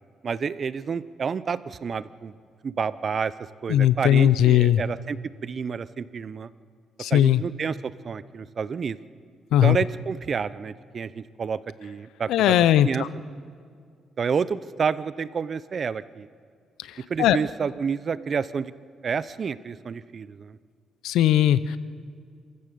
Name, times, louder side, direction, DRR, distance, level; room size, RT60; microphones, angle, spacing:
voice 1, 0.2-2.3 2.6-3.3 3.6-6.5 7.1-9.0 9.6-12.6 12.8-13.0 14.2-16.3 17.1-18.7 19.0-20.6, right 6 dB, 45° right, 16 dB, 0.7 m, -29 dB
voice 2, 3.7-4.8 7.0-7.4 9.5-9.8 12.3-13.1 17.2-17.4 21.0-21.8, left 11 dB, 85° left, 16 dB, 0.6 m, -18 dB
27.0 x 15.0 x 6.9 m, 2.2 s
cardioid pair, 90°, 0 cm